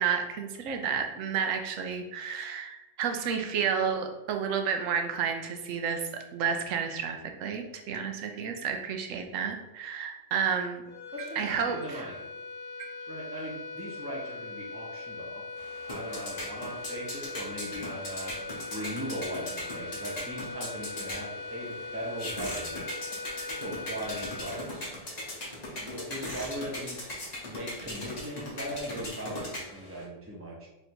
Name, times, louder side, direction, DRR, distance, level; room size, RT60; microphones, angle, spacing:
voice 1, 0.0-10.8 11.2-12.1 12.8-12.9, right 7 dB, 85° right, 5 dB, 1.0 m, -31 dB
sound 1, 10.9-25.4, left 3 dB, 50° left, 1.4 m, -41 dB
voice 2, 11.1-12.2 13.1-15.4 15.9-18.4 18.7-22.8 23.6-24.9 25.8-27.1 27.4-30.7, equal, 15° right, -4 dB, 0.6 m, -39 dB
sound 2, 15.6-30.0, left 1 dB, 35° left, 0.9 m, -39 dB
3.3 x 2.6 x 4.3 m, 1.0 s
omnidirectional pair, 1.3 m